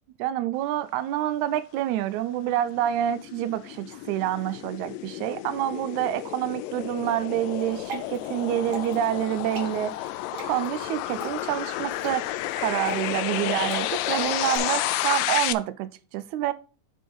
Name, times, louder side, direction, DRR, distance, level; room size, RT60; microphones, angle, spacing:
voice 1, 0.2-9.9 10.4-16.5, right 12 dB, 75° right, 1.8 m, -27 dB
sound 1, 2.3-15.5, left 15 dB, 80° left, 2.1 m, -31 dB
Water / Drip, 7.6-14.6, right 4 dB, 50° right, 2.4 m, -41 dB
8.3 x 3.8 x 6.0 m
omnidirectional pair, 4.0 m